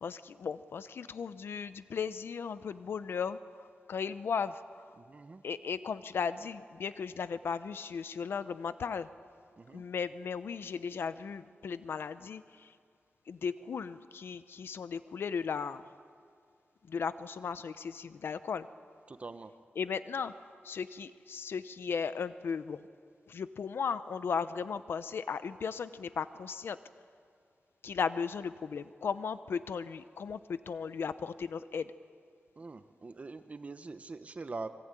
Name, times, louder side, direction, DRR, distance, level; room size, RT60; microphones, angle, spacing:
voice 1, 0.0-4.8 5.4-9.1 9.7-12.7 13.3-15.8 16.9-18.7 19.8-20.3 20.6-22.8 23.3-26.8 27.8-31.9, left 6 dB, 85° left, 13 dB, 0.7 m, -36 dB
voice 2, 5.0-5.4 9.6-9.8 19.1-19.5 32.6-34.7, right 3 dB, 35° right, 9 dB, 1.0 m, -43 dB
26.0 x 24.0 x 9.1 m, 2.2 s
wide cardioid pair, 125°, 4 cm